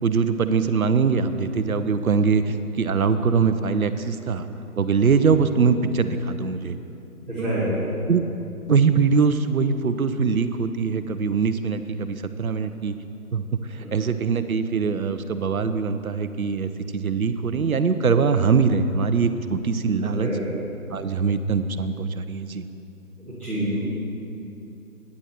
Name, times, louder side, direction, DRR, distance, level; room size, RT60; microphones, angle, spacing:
voice 1, 0.0-4.5 4.8-6.8 7.4-8.2 8.7-13.0 13.3-13.4 13.7-20.3 20.9-22.7, right 5 dB, 65° right, 10 dB, 0.7 m, -22 dB
voice 2, 7.3-7.7 13.8-13.9 20.0-20.4 23.2-23.8, right 1 dB, 5° left, -14 dB, 2.0 m, -28 dB
11.5 x 9.9 x 4.3 m, 2.8 s
figure-of-eight pair, 160°, 46 cm